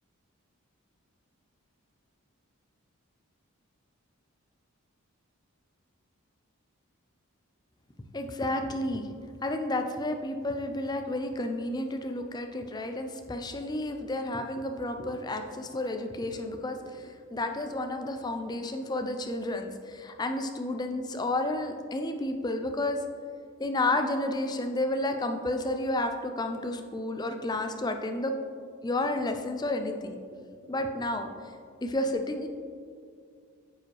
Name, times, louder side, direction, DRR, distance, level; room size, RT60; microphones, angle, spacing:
voice 1, 8.1-9.1 9.4-23.0 23.6-28.3 28.8-30.2 30.7-31.5 31.8-32.5, left 2 dB, 20° left, 6 dB, 0.4 m, -31 dB
8.8 x 4.9 x 3.2 m, 2.2 s
head